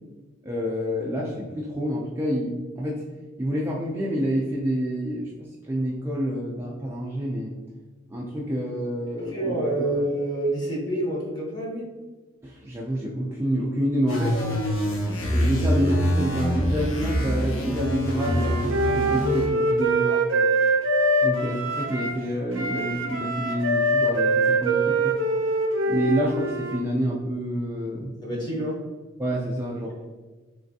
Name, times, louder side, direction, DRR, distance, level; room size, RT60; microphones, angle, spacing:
voice 1, 0.4-3.0 3.4-5.3 5.7-7.5 8.1-9.9 12.4-14.4 15.3-20.0 21.2-25.1 25.9-28.1 29.2-30.0, equal, 10° right, -4 dB, 0.3 m, -28 dB
voice 2, 9.3-11.9 20.0-20.4 28.2-28.8, right 1 dB, 20° left, -2 dB, 0.8 m, -28 dB
sound 1, 14.1-19.5, equal, 85° left, 0.7 m, -25 dB
Wind instrument woodwind instrument, 18.1-22.2 22.5-26.8, right 2 dB, 70° right, 0.6 m, -24 dB
3.3 x 3.0 x 2.7 m, 1.3 s
head